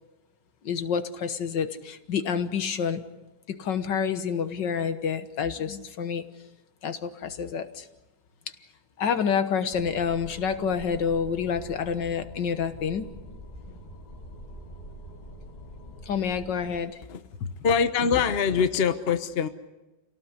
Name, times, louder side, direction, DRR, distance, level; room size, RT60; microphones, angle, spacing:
voice 1, 0.6-3.0 3.5-6.2 6.8-7.9 9.0-13.1 13.7-13.8 16.1-17.0 17.4-17.5, left 7 dB, 80° left, 10 dB, 1.9 m, -28 dB
sound 1, 9.7-16.8, equal, 25° left, 3.2 m, -44 dB
voice 2, 17.6-19.5, left 6 dB, 40° left, 10 dB, 1.1 m, -23 dB
28.0 x 18.0 x 8.2 m, 1.1 s
omnidirectional pair, 1.9 m